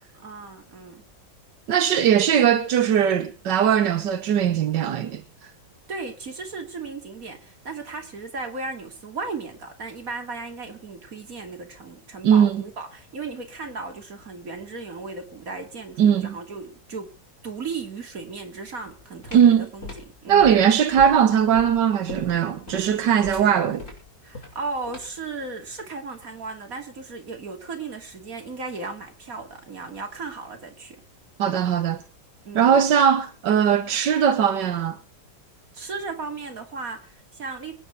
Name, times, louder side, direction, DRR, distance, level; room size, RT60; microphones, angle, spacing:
voice 1, 0.1-1.0 5.9-17.2 17.4-20.6 24.2-31.0 32.4-32.9 35.7-37.7, right 4 dB, 50° right, 3.1 m, -36 dB
voice 2, 1.7-5.2 12.2-12.6 16.0-16.4 19.3-19.7 20.3-23.8 31.4-32.0 32.5-35.0, right 8 dB, 90° right, 1.7 m, -19 dB
sound 1, 19.0-25.3, left 2 dB, 45° left, 6.8 m, -40 dB
24.5 x 9.5 x 4.6 m
omnidirectional pair, 1.8 m